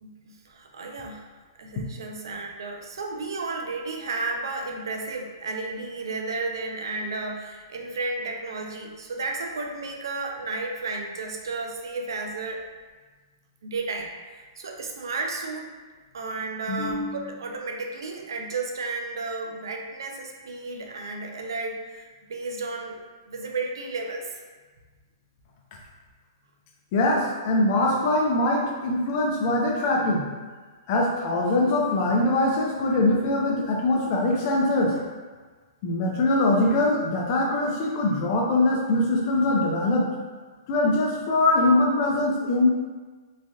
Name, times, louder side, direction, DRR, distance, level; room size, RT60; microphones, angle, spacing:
voice 1, 0.0-1.3 1.6-12.6 13.6-15.7 16.1-23.0 23.3-24.4, right 3 dB, 80° right, 2 dB, 0.5 m, -33 dB
voice 2, 16.7-17.2 26.9-30.3 30.9-35.0 35.8-40.1 40.7-42.7, left 2 dB, 45° left, -1 dB, 0.6 m, -22 dB
3.2 x 2.6 x 2.3 m, 1.4 s
hypercardioid pair, 140°, 2 cm